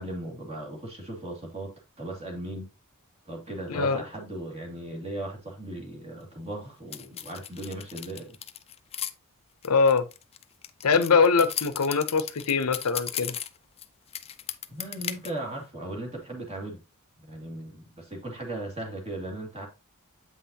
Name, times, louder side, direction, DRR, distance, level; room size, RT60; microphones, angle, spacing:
voice 1, 0.0-2.7 3.3-8.4 14.7-16.8 17.2-19.7, right 1 dB, 30° right, 2.1 m, -37 dB
voice 2, 3.7-4.0 9.6-10.0 10.8-13.4, left 5 dB, 80° left, 0.7 m, -22 dB
sound 1, 6.9-9.1 9.6-13.9 14.1-15.3, left 10 dB, 25° left, 0.4 m, -36 dB
7.9 x 5.6 x 2.8 m
head